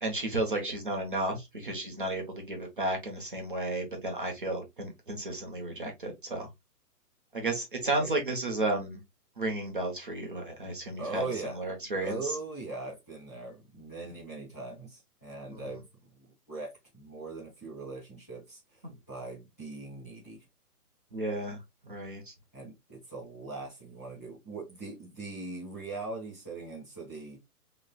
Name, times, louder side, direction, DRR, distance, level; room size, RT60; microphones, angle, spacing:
voice 1, 0.0-6.5 7.3-9.0 9.4-11.2 11.5-12.3 15.5-15.6 21.1-21.6 21.8-22.3, right 2 dB, 35° right, 0.9 m, -33 dB
voice 2, 11.0-11.6 12.0-15.8 16.2-20.4 22.5-27.4, right 3 dB, 10° left, 1.0 m, -40 dB
5.6 x 3.1 x 2.3 m
hypercardioid pair, 175°, 47 cm